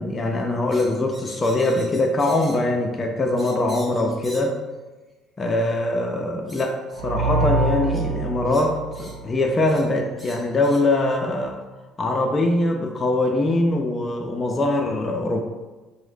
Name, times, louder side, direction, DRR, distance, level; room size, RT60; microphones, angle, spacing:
voice 1, 0.0-4.6 5.4-11.6 12.0-15.4, left 2 dB, 30° left, 2 dB, 0.4 m, -22 dB
sound 1, 0.7-2.7 3.4-4.6 5.7-5.8 6.5-6.7 7.9-8.1 8.4-9.2 9.7-9.9 10.2-10.9, equal, 15° right, 0.7 m, -44 dB
sound 2, 6.9-9.8, right 2 dB, 80° right, 0.4 m, -25 dB
2.6 x 2.0 x 3.3 m, 1.2 s
supercardioid pair, 75°, 0 cm